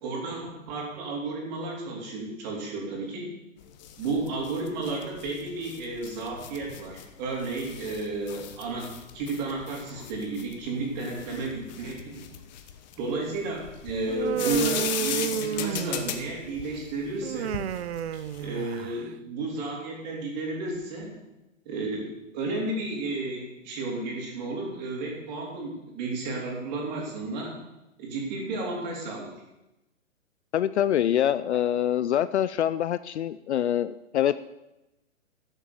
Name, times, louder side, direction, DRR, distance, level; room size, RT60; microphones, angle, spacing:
voice 1, 0.0-3.3 4.0-8.9 9.1-12.2 13.0-17.6 18.4-21.2 21.7-27.5 28.0-29.3 31.5-31.6, right 3 dB, 35° right, -1 dB, 3.6 m, -32 dB
sound 1, 3.6-18.6, left 9 dB, 35° left, 1.0 m, -38 dB
Human voice, 14.1-16.3 17.2-19.1, right 10 dB, 55° right, 0.6 m, -31 dB
voice 2, 30.5-34.5, left 10 dB, 60° left, 15 dB, 0.5 m, -25 dB
12.5 x 7.4 x 7.1 m, 0.94 s
hypercardioid pair, 155°, 40 cm